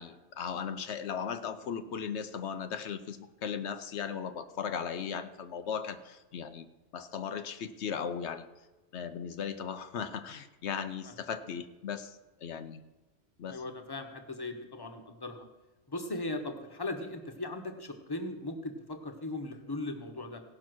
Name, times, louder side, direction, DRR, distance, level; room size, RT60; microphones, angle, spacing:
voice 1, 0.0-6.7 6.9-8.5 8.9-12.8 13.4-13.6, left 7 dB, 75° left, 10 dB, 1.0 m, -37 dB
voice 2, 13.5-15.5 15.9-20.4, left 2 dB, 20° left, 6 dB, 1.1 m, -38 dB
16.5 x 5.8 x 6.1 m, 1.1 s
omnidirectional pair, 1.2 m